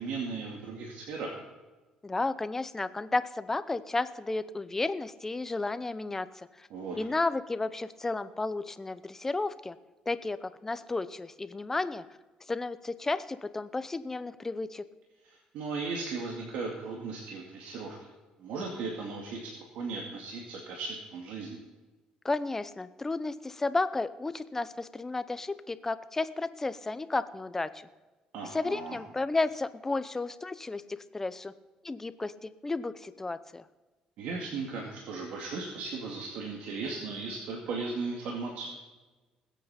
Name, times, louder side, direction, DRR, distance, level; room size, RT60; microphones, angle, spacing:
voice 1, 0.0-1.4 6.7-7.0 15.2-18.0 18.4-21.6 28.3-29.0 34.2-38.7, right 4 dB, 80° right, -1 dB, 2.3 m, -37 dB
voice 2, 2.0-6.3 6.6-6.7 7.0-9.8 10.1-12.0 12.5-14.8 22.2-27.9 28.5-31.5 31.8-33.6, left 3 dB, 15° left, 13 dB, 0.7 m, -32 dB
20.5 x 8.4 x 4.3 m, 1.2 s
cardioid pair, 110°, 2 cm